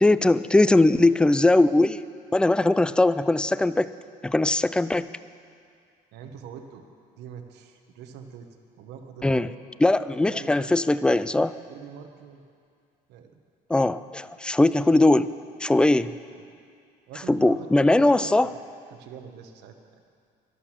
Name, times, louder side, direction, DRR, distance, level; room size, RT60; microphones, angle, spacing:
voice 1, 0.0-2.0 2.3-3.9 4.2-5.1 9.2-9.5 9.8-11.6 13.7-15.3 15.6-16.1 17.3-18.5, left 2 dB, 5° left, 15 dB, 0.3 m, -20 dB
voice 2, 6.1-6.9 7.1-8.5 8.8-9.5 10.2-10.7 11.7-12.4 13.1-13.4 16.3-16.5 17.1-18.5 18.9-19.8, right 7 dB, 85° right, 6 dB, 1.2 m, -43 dB
12.5 x 11.5 x 7.4 m, 2.3 s
cardioid pair, 110°, 17 cm